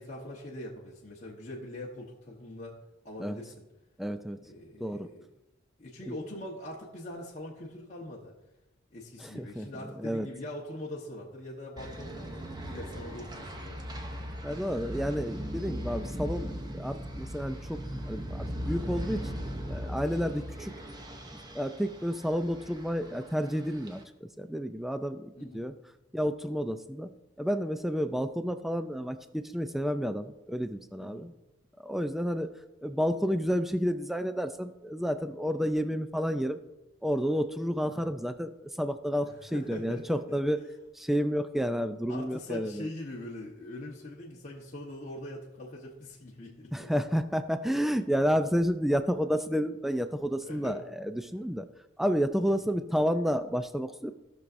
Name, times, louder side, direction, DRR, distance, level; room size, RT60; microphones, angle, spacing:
voice 1, 0.0-2.8 3.0-3.6 4.4-5.2 5.8-8.4 8.9-13.9 25.3-25.7 31.0-31.3 37.8-38.1 39.2-40.4 42.1-46.9 50.4-50.8 52.7-52.8, left 1 dB, 35° left, -4 dB, 1.1 m, -42 dB
voice 2, 4.0-4.4 4.8-5.1 9.2-10.3 14.4-19.3 19.7-20.7 21.5-25.7 26.1-27.1 27.4-31.3 31.8-32.5 32.8-36.6 37.0-38.5 38.8-40.6 40.9-42.9 46.7-51.7 52.0-54.1, equal, ahead, 10 dB, 0.3 m, -30 dB
sound 1, 11.8-24.0, equal, 20° right, 0.7 m, -38 dB
16.5 x 6.1 x 2.6 m, 0.98 s
head